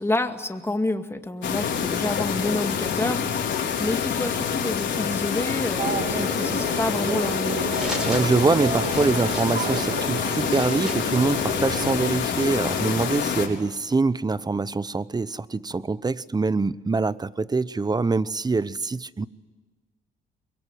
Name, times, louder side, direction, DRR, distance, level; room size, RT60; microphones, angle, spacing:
voice 1, 0.0-7.6, left 2 dB, 10° left, 2.0 m, -29 dB
sound 1, 1.4-13.5, left 7 dB, 65° left, 4.2 m, -26 dB
sound 2, 5.8-12.1, right 6 dB, 50° right, 1.9 m, -32 dB
sound 3, 7.7-12.1, equal, 5° right, 5.0 m, -38 dB
voice 2, 7.8-19.3, right 3 dB, 20° right, 0.8 m, -24 dB
24.5 x 22.0 x 9.3 m
cardioid pair, 90°, 20 cm